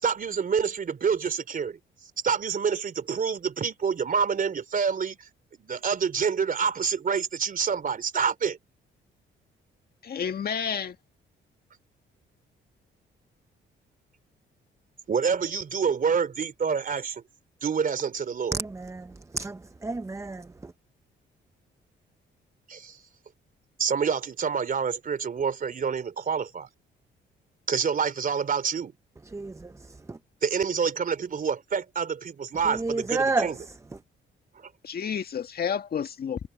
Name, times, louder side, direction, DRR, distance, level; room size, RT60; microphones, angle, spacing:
voice 1, 0.0-1.8 2.2-5.3 5.6-8.6 15.1-17.2 17.6-18.6 22.7-23.0 23.8-26.7 27.7-28.9 30.4-33.6, right 6 dB, 45° right, 3.4 m, -27 dB
voice 2, 10.0-11.0 34.8-36.4, left 7 dB, 50° left, 1.8 m, -30 dB
voice 3, 18.5-19.1 19.3-20.5 29.3-29.7 30.1-30.2 32.7-33.5, right 3 dB, 15° right, 0.6 m, -30 dB
cardioid pair, 90°, 20 cm